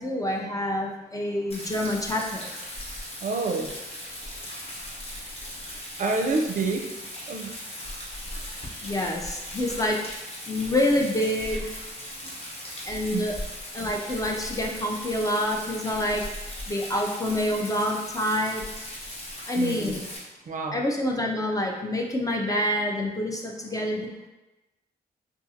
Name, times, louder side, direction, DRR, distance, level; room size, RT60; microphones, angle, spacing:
voice 1, 0.0-2.5 8.8-10.1 10.5-11.7 12.9-13.4 13.7-18.6 19.4-20.1 20.7-24.3, left 1 dB, 20° left, 0 dB, 0.4 m, -27 dB
Rain, 1.5-20.2, left 1 dB, 35° left, 0.9 m, -38 dB
voice 2, 3.2-3.7 4.2-4.4 5.4-5.6 6.0-6.9 7.3-7.5 12.2-12.3 13.1-13.2 19.6-20.0 20.5-20.8, right 3 dB, 50° right, 3 dB, 0.4 m, -28 dB
2.6 x 2.3 x 2.7 m, 1.0 s
cardioid pair, 65°, 17 cm